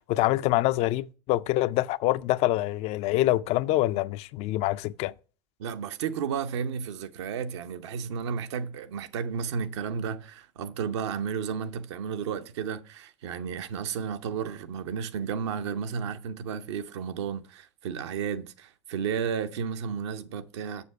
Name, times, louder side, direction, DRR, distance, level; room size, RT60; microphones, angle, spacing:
voice 1, 0.0-5.1, left 16 dB, 45° left, 0.4 m, -25 dB
voice 2, 5.6-20.8, right 7 dB, 70° right, 0.8 m, -33 dB
6.9 x 6.5 x 4.7 m
hypercardioid pair, 95°, 15 cm